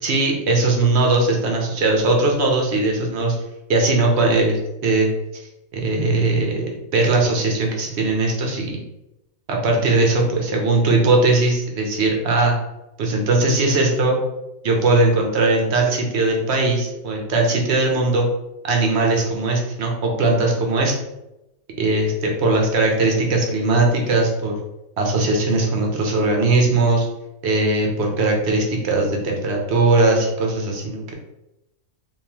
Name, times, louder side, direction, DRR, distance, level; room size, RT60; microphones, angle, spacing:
voice 1, 0.0-3.4 3.7-5.1 5.3-5.4 5.7-8.8 9.5-12.5 13.0-14.2 14.6-18.3 18.6-20.9 21.8-24.5 25.0-27.1 27.4-31.1, right 2 dB, 55° right, 1 dB, 0.9 m, -19 dB
3.6 x 2.7 x 2.8 m, 0.90 s
omnidirectional pair, 1.5 m